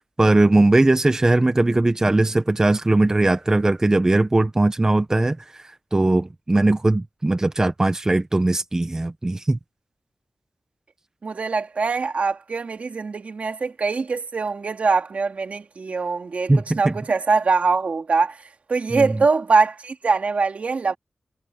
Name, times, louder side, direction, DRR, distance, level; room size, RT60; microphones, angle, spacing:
voice 1, 0.2-9.6 16.5-16.9 18.9-19.2, right 2 dB, 20° right, 0.9 m, -19 dB
voice 2, 11.2-21.0, right 4 dB, 60° right, 2.3 m, -23 dB
wide cardioid pair, 115°, 3 cm